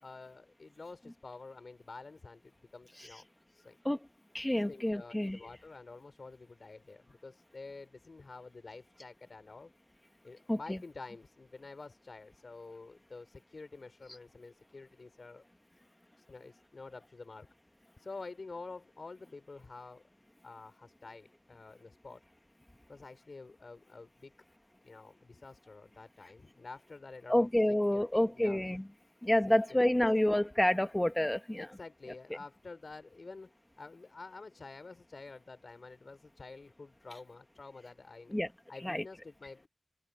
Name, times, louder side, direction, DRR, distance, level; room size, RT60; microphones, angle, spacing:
voice 1, 0.0-3.8 4.7-9.7 10.2-15.4 16.2-17.5 18.0-20.0 20.4-22.2 22.9-24.3 24.8-27.5 27.9-28.6 29.4-30.1 31.6-38.4 38.7-39.7, left 3 dB, 60° left, 3.7 m, -49 dB
voice 2, 4.3-5.4 10.5-10.8 27.3-28.8 29.2-31.7 38.3-38.5 38.8-39.0, left 1 dB, 15° left, 1.1 m, -28 dB
open air
wide cardioid pair, 90°, 0 cm